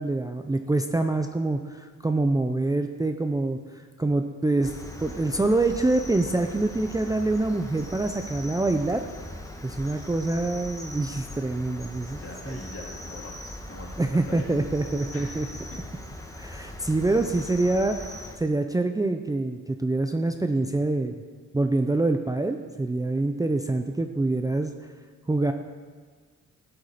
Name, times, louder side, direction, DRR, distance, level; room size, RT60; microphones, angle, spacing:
voice 1, 0.0-3.6 4.0-4.7 5.0-9.1 9.6-12.2 12.5-12.6 14.0-15.5 16.4-18.0 18.4-21.1 21.5-24.7 25.3-25.5, right 2 dB, 10° right, 5 dB, 0.5 m, -25 dB
Cricket, 4.6-18.4, left 1 dB, 10° left, 1.3 m, -40 dB
voice 2, 12.1-13.4 13.7-14.5 15.1-15.8, left 2 dB, 45° left, -2 dB, 2.8 m, -42 dB
12.5 x 7.8 x 4.2 m, 1.5 s
cardioid pair, 75°, 31 cm